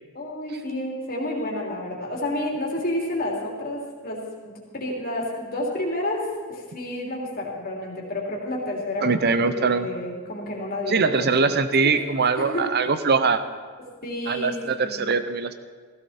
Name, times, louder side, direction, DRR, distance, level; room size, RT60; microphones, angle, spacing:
voice 1, 0.1-6.2 6.5-11.3 12.2-12.6 14.0-14.5 14.8-15.1, left 1 dB, 40° left, -2 dB, 3.1 m, -30 dB
voice 2, 9.0-9.9 10.9-13.4 14.3-15.5, right 4 dB, 45° right, 11 dB, 0.8 m, -22 dB
16.0 x 16.0 x 4.3 m, 1.5 s
head